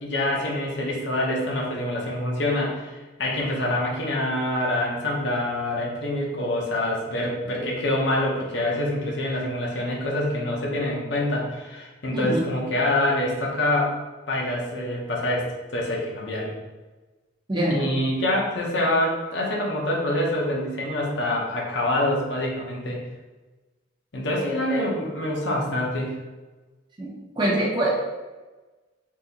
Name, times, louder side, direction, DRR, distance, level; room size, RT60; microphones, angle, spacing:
voice 1, 0.0-14.0 14.3-16.5 17.7-23.0 24.1-26.1, left 1 dB, 70° left, -2 dB, 0.7 m, -26 dB
voice 2, 12.1-12.4 17.5-17.9 27.0-27.1 27.4-27.9, right 1 dB, 25° right, -5 dB, 0.8 m, -24 dB
3.7 x 2.7 x 2.8 m, 1.2 s
head